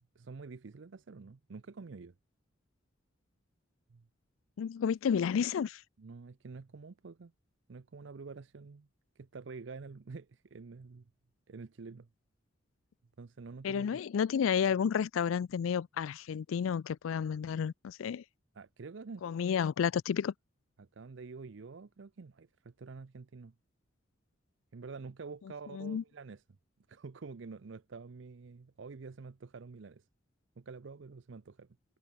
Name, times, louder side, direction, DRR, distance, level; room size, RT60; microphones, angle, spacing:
voice 1, 0.2-2.1 3.9-4.1 6.0-7.3 7.7-8.9 9.2-11.1 11.5-12.1 13.2-14.0 18.5-19.2 20.8-23.5 24.7-26.4 26.9-30.0 30.6-31.8, right 4 dB, 70° right, 0.6 m, -47 dB
voice 2, 4.6-5.8 13.6-18.2 19.2-20.3 25.7-26.0, left 7 dB, 85° left, 0.3 m, -31 dB
head